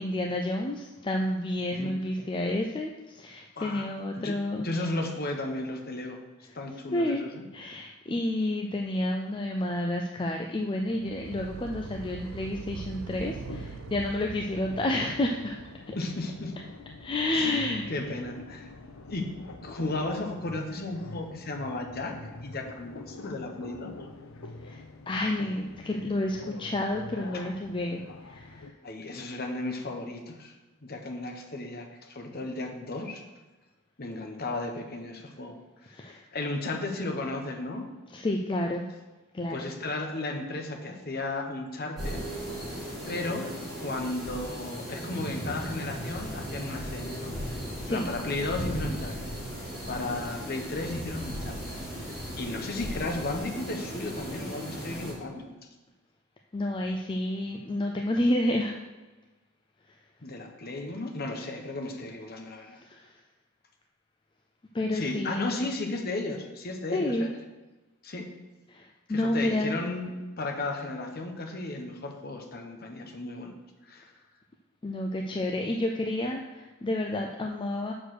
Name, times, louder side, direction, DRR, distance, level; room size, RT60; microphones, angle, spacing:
voice 1, 0.0-4.7 6.5-6.6 6.9-7.2 7.5-15.6 15.9-16.0 17.0-17.8 24.6-28.7 35.9-36.2 38.1-38.9 39.3-39.6 47.8-48.1 56.5-58.8 62.8-63.1 64.7-65.4 66.9-67.3 68.7-69.8 74.8-77.9, left 1 dB, 25° left, 2 dB, 0.4 m, -30 dB
voice 2, 3.6-3.9 4.1-6.2 6.5-7.4 15.9-16.5 17.3-18.7 19.1-19.3 19.6-23.9 28.8-30.6 30.8-33.2 34.0-35.6 35.9-37.9 39.5-42.2 43.1-43.5 43.8-47.6 47.9-49.1 49.9-51.6 52.0-55.6 60.2-62.8 64.9-67.3 68.0-68.3 69.1-73.6 73.8-74.1, left 2 dB, 45° left, 3 dB, 1.0 m, -34 dB
sound 1, 10.9-16.1, right 5 dB, 65° right, 0.3 m, -42 dB
sound 2, 13.2-28.7, left 2 dB, 70° left, 0.6 m, -45 dB
sound 3, 42.0-55.1, equal, ahead, 2.9 m, -36 dB
6.5 x 4.5 x 6.4 m, 1.2 s
head